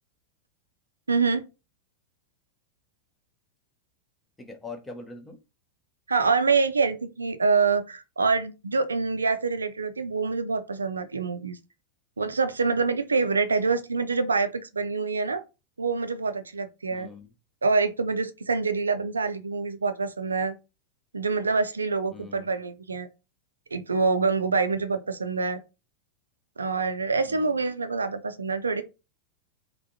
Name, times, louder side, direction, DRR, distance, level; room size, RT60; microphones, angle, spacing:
voice 1, 1.1-1.4 6.1-11.6 12.2-15.4 15.8-17.1 17.6-20.5 21.1-23.1 23.7-25.6 26.6-28.8, right 4 dB, 75° right, 0.4 m, -26 dB
voice 2, 4.4-5.4 16.9-17.3 22.1-22.5 27.3-27.6, left 3 dB, 10° left, 0.8 m, -42 dB
3.4 x 2.4 x 2.7 m
figure-of-eight pair, 90°, 0 cm